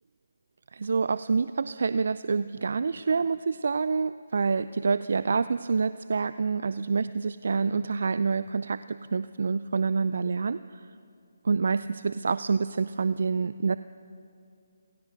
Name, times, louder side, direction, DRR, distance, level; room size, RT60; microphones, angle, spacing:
voice 1, 0.7-10.9 11.4-13.8, right 4 dB, 60° right, 14 dB, 0.5 m, -27 dB
29.0 x 17.5 x 6.5 m, 2.5 s
figure-of-eight pair, 150°, 0 cm